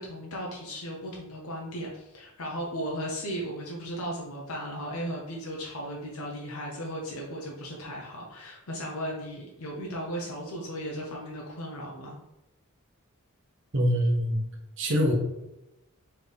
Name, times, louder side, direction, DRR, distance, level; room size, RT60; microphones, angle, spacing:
voice 1, 0.0-12.2, equal, 90° left, -2 dB, 0.9 m, -36 dB
voice 2, 13.7-14.4 14.8-15.1, equal, 60° right, 0 dB, 1.0 m, -24 dB
4.2 x 3.4 x 3.4 m, 0.93 s
head